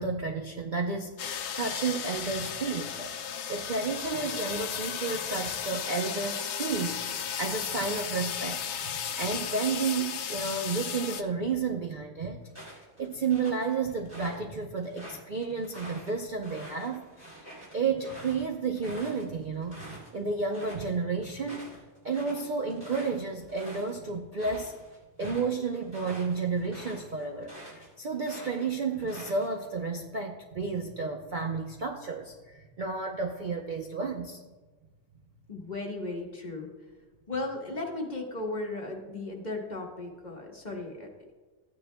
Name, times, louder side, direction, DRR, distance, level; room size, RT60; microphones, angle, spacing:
voice 1, 0.0-3.1 3.5-7.0 7.4-17.5 17.7-19.8 20.1-21.7 22.0-24.7 25.2-34.4, right 4 dB, 45° right, 2 dB, 0.6 m, -32 dB
sound 1, 1.2-11.2, left 8 dB, 60° left, 0.8 m, -35 dB
sound 2, 12.5-14.4 14.8-20.1 20.4-20.9 21.2-27.9 28.2-29.7, equal, 10° right, 3.1 m, -46 dB
voice 2, 35.5-36.7 37.3-41.3, left 2 dB, 30° left, 1 dB, 1.3 m, -36 dB
14.5 x 9.5 x 2.2 m, 1.3 s
omnidirectional pair, 1.6 m